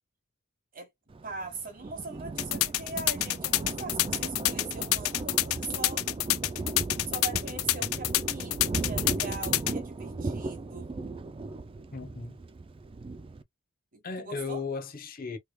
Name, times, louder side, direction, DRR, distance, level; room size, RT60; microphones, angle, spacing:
Thunder, 1.1-13.4, right 3 dB, 25° right, 0.3 m, -37 dB
voice 1, 1.2-6.1 7.1-10.9 13.9-14.6, right 3 dB, 40° right, 1.3 m, -41 dB
sound 1, 2.4-9.7, left 16 dB, 80° left, 0.4 m, -27 dB
voice 2, 11.9-12.4 14.0-15.4, left 4 dB, 45° left, 0.7 m, -36 dB
3.2 x 3.1 x 2.2 m
head